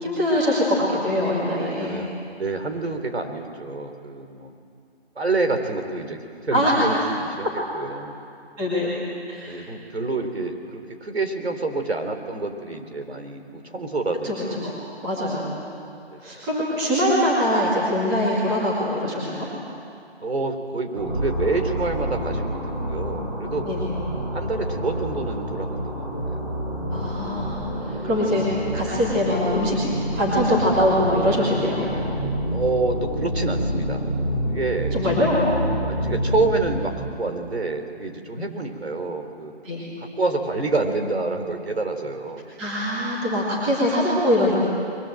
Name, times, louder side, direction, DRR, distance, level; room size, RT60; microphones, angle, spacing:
voice 1, 0.0-2.0 6.5-6.7 8.6-8.9 9.3-9.6 14.2-14.8 15.0-15.7 16.2-19.5 23.7-23.8 26.9-29.8 30.2-31.9 34.9-35.5 38.4-38.5 39.6-39.9 42.6-44.5, left 1 dB, 5° right, -7 dB, 2.2 m, -23 dB
voice 2, 1.8-4.5 5.2-7.5 7.7-8.1 9.5-14.6 16.1-16.2 20.2-23.7 24.3-26.5 32.5-34.0 34.5-35.0 35.9-39.5 40.0-42.4, right 3 dB, 70° right, 5 dB, 4.0 m, -27 dB
sound 1, 20.9-37.1, equal, 20° right, 5.2 m, -28 dB
29.5 x 23.0 x 7.8 m, 2.4 s
hypercardioid pair, 180°, 32 cm